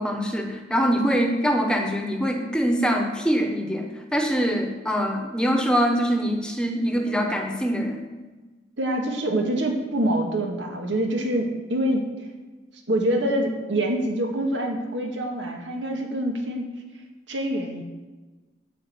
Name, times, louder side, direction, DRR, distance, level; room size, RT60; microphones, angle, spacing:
voice 1, 0.0-8.1, equal, 5° left, 3 dB, 1.1 m, -24 dB
voice 2, 8.8-12.1 12.9-16.7 17.3-17.8, right 1 dB, 85° right, 2 dB, 2.0 m, -25 dB
12.0 x 5.1 x 8.1 m, 1.2 s
head